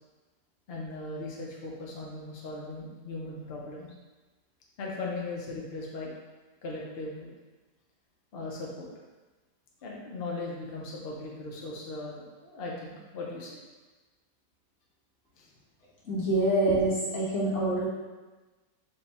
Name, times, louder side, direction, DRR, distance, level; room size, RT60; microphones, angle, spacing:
voice 1, 0.7-3.9 4.8-6.1 6.6-7.3 8.3-8.9 9.8-13.6 15.4-15.5, left 2 dB, 80° left, -3 dB, 0.5 m, -38 dB
voice 2, 16.0-17.8, right 1 dB, 45° left, -8 dB, 1.5 m, -26 dB
4.8 x 2.3 x 4.1 m, 1.2 s
omnidirectional pair, 1.9 m